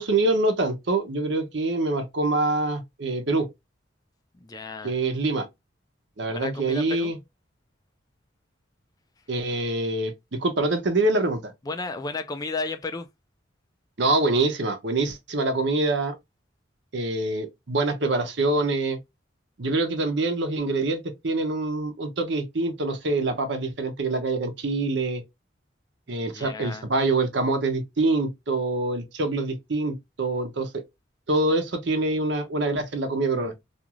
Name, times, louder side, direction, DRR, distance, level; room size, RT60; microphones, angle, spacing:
voice 1, 0.0-3.5 4.8-5.5 6.2-7.2 9.3-11.5 14.0-16.1 16.9-19.0 19.6-25.2 26.1-30.8 31.3-33.5, right 2 dB, 60° right, 0.7 m, -25 dB
voice 2, 4.4-5.0 6.3-7.1 11.7-13.1 26.3-26.9, left 3 dB, 20° left, 0.4 m, -33 dB
2.5 x 2.4 x 2.9 m
head